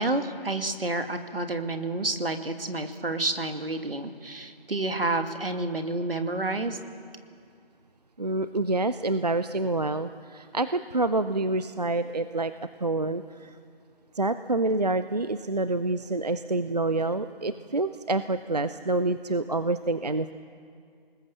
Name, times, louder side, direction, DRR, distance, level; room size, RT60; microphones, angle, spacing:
voice 1, 0.0-6.8, right 2 dB, 70° right, 6 dB, 2.2 m, -29 dB
voice 2, 8.2-12.5 12.8-13.5 14.1-20.3, right 2 dB, 45° right, 12 dB, 0.6 m, -27 dB
27.0 x 20.0 x 6.9 m, 2.3 s
figure-of-eight pair, 165°, 30 cm